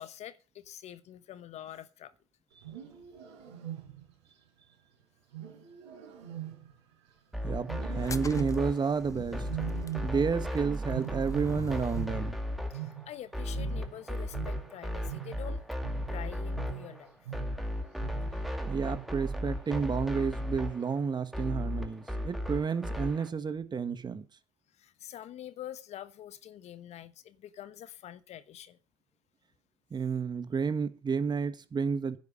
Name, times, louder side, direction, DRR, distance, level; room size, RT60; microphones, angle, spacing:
voice 1, 0.0-2.1 12.7-15.6 16.1-17.2 24.8-28.8, left 11 dB, 50° left, 1.0 m, -46 dB
Wild animals, 2.5-4.2 5.3-7.2 7.6-8.8 9.4-10.5 10.8-13.3 13.5-18.4 18.8-19.3 19.7-20.1 20.8-21.3, right 13 dB, 80° right, 4.8 m, -42 dB
sound 1, 7.3-23.3, equal, ahead, 2.3 m, -35 dB
voice 2, 7.4-9.5 10.0-12.3 18.7-24.2 29.9-32.2, right 5 dB, 30° right, 1.5 m, -31 dB
sound 2, 7.9-12.1, left 5 dB, 25° left, 0.8 m, -44 dB
10.5 x 8.8 x 6.5 m
hypercardioid pair, 60°, 14 cm